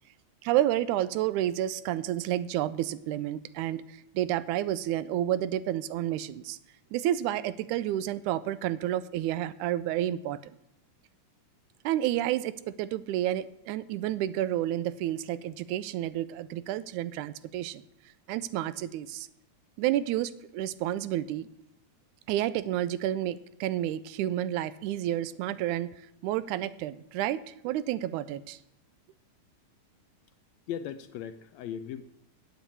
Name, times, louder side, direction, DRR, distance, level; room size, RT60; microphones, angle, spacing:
voice 1, 0.4-6.6 6.9-10.4 11.8-17.8 18.3-19.3 19.8-21.5 22.3-25.9 26.2-28.6, right 13 dB, 85° right, 15 dB, 2.0 m, -30 dB
voice 2, 30.7-32.0, left 9 dB, 80° left, 10 dB, 1.7 m, -37 dB
8.9 x 8.1 x 8.4 m, 0.82 s
omnidirectional pair, 3.5 m